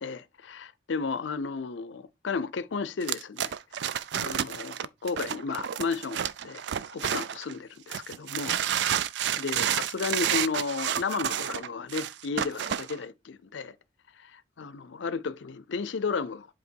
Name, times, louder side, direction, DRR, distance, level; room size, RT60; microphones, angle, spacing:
voice 1, 0.0-3.5 3.8-6.6 6.9-8.6 9.4-13.7 14.2-16.5, left 5 dB, 75° left, 0.5 m, -33 dB
sound 1, 3.0-7.5 7.9-13.0, right 9 dB, 65° right, 0.3 m, -30 dB
7.9 x 2.9 x 4.5 m
head